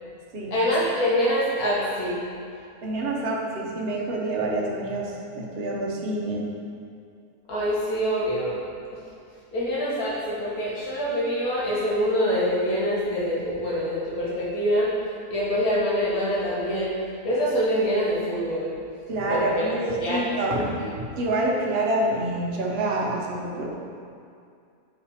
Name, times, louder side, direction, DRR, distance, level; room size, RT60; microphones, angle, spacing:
voice 1, 0.5-2.2 7.5-8.6 8.9-9.0 9.5-14.9 15.3-16.9 17.2-18.7 19.3-20.3 20.5-20.9, equal, 75° left, -6 dB, 1.8 m, -25 dB
voice 2, 2.8-6.5 19.1-20.7 21.2-23.7, right 1 dB, 50° right, -3 dB, 1.0 m, -27 dB
5.7 x 4.1 x 4.9 m, 2.4 s
omnidirectional pair, 1.6 m